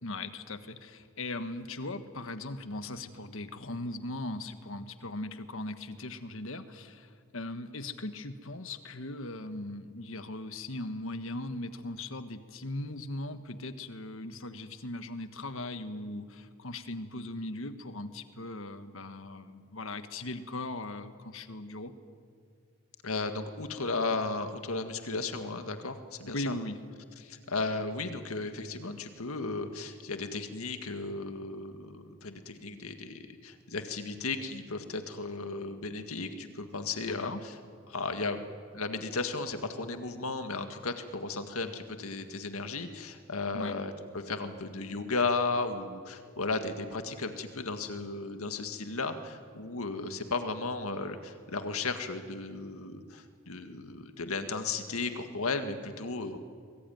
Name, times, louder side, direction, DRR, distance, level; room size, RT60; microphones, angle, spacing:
voice 1, 0.0-21.9 26.3-26.8 37.1-37.4 43.5-43.8, left 2 dB, 65° left, 10 dB, 1.4 m, -39 dB
voice 2, 23.0-26.5 27.2-37.5 37.9-38.4 38.7-56.4, left 3 dB, 80° left, 7 dB, 1.9 m, -35 dB
23.5 x 21.5 x 9.3 m, 2.1 s
head